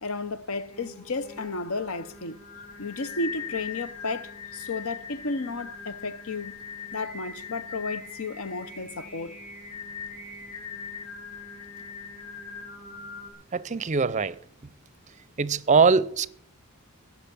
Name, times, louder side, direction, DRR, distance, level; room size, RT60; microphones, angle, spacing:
voice 1, 0.0-2.4 2.8-6.6 6.9-9.4, left 3 dB, 70° left, 0.9 m, -33 dB
Singing, 0.7-13.3, left 5 dB, 30° left, 4.0 m, -41 dB
voice 2, 13.5-14.4 15.4-16.3, right 5 dB, 35° right, 0.5 m, -22 dB
17.0 x 6.3 x 8.5 m
head